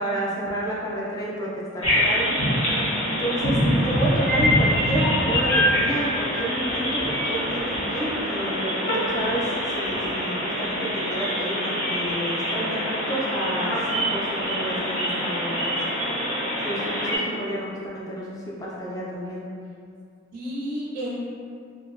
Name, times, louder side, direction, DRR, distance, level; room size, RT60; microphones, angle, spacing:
voice 1, 0.0-2.4 3.0-3.6 3.8-15.8 16.6-19.4, equal, 15° left, -6 dB, 0.3 m, -30 dB
sound 1, 1.8-17.2, equal, 90° left, 0.7 m, -25 dB
voice 2, 2.7-3.2 20.3-21.2, equal, 45° right, -7 dB, 0.5 m, -32 dB
2.7 x 2.0 x 2.4 m, 2.3 s
head